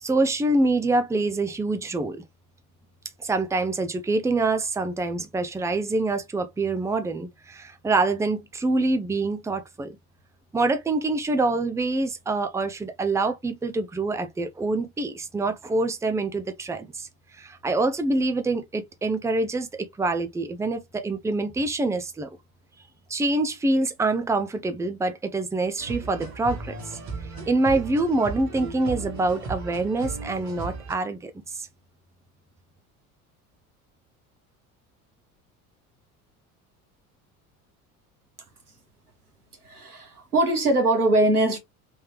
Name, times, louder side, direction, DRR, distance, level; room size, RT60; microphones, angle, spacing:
voice 1, 0.0-2.2 3.2-10.0 10.5-17.1 17.4-19.7 20.0-22.3 23.1-26.7 27.4-31.7, right 2 dB, 5° right, 0.6 m, -25 dB
sound 1, 25.8-30.9, right 3 dB, 40° right, 1.6 m, -36 dB
voice 2, 39.6-41.6, right 2 dB, 90° right, 1.2 m, -22 dB
3.6 x 3.2 x 3.0 m
figure-of-eight pair, 65°, 44 cm